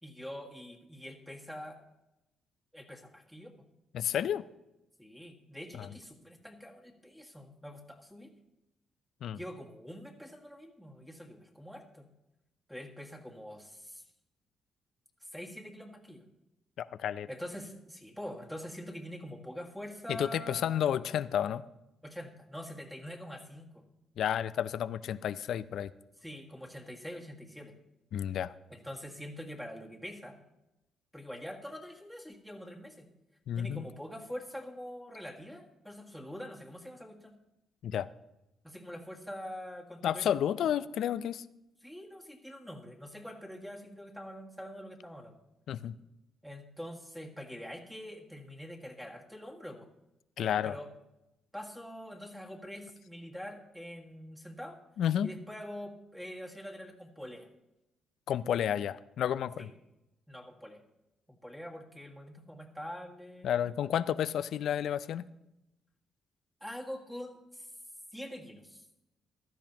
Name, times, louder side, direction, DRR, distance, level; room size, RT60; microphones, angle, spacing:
voice 1, 0.0-1.8 2.7-3.5 5.0-8.3 9.4-12.1 12.7-14.0 15.2-16.2 17.3-20.8 22.0-23.8 26.2-27.7 28.7-30.4 31.1-33.1 33.6-37.4 38.6-40.2 41.8-45.4 46.4-49.9 50.4-50.9 51.5-54.8 55.2-57.5 59.6-59.7 60.3-60.8 61.4-63.8 66.6-67.7 68.1-68.9, equal, ahead, -1 dB, 1.8 m, -45 dB
voice 2, 3.9-4.4 5.7-5.9 9.2-9.4 16.8-17.3 20.1-21.6 24.2-25.9 28.1-28.5 33.5-33.8 37.8-38.1 40.0-41.4 45.7-46.0 50.4-50.8 55.0-55.3 58.3-59.7 63.4-65.3, left 9 dB, 70° left, 15 dB, 0.4 m, -31 dB
15.5 x 12.5 x 2.9 m, 0.92 s
cardioid pair, 90°, 0 cm